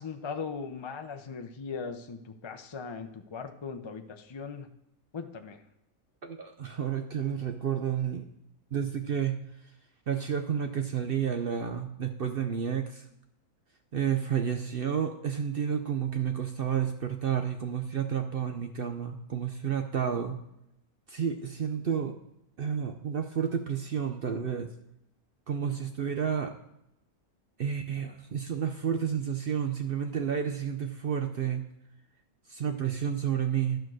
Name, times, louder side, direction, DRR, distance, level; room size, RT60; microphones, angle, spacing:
voice 1, 0.0-4.7 5.1-5.6, left 5 dB, 40° left, 6 dB, 0.4 m, -39 dB
voice 2, 6.2-8.2 8.7-9.4 10.1-13.0 13.9-20.4 21.1-22.1 22.6-24.7 25.5-26.5 27.6-31.6 32.5-33.8, right 8 dB, 55° right, 6 dB, 0.7 m, -30 dB
12.0 x 4.5 x 6.2 m, 0.83 s
omnidirectional pair, 1.6 m